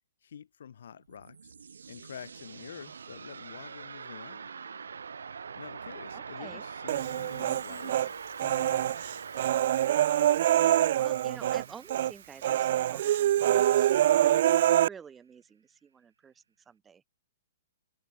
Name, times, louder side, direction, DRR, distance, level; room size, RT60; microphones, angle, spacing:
voice 1, 0.2-1.5 1.9-4.5 5.6-9.3, left 8 dB, 70° left, 4.9 m, -48 dB
sound 1, 0.9-13.8, right 6 dB, 85° right, 2.6 m, -44 dB
voice 2, 6.1-6.7 10.6-17.0, right 7 dB, 15° right, 2.2 m, -49 dB
Human voice, 6.9-8.1 8.4-11.6 11.9-12.1 12.4-14.9, right 12 dB, 55° right, 0.4 m, -25 dB
hypercardioid pair, 140°, 0 cm